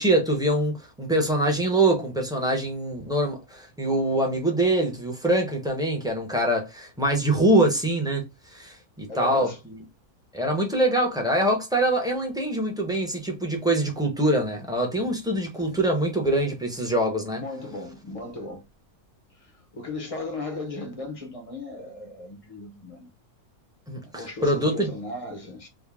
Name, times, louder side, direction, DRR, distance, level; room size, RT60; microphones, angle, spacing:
voice 1, 0.0-8.2 8.5-9.5 10.3-17.4 23.9-24.9, right 1 dB, 5° right, 0.7 m, -24 dB
voice 2, 9.1-9.6 15.6-15.8 17.4-18.6 19.3-23.1 24.0-25.7, left 2 dB, 30° left, 0.6 m, -36 dB
3.6 x 2.2 x 3.5 m
omnidirectional pair, 1.6 m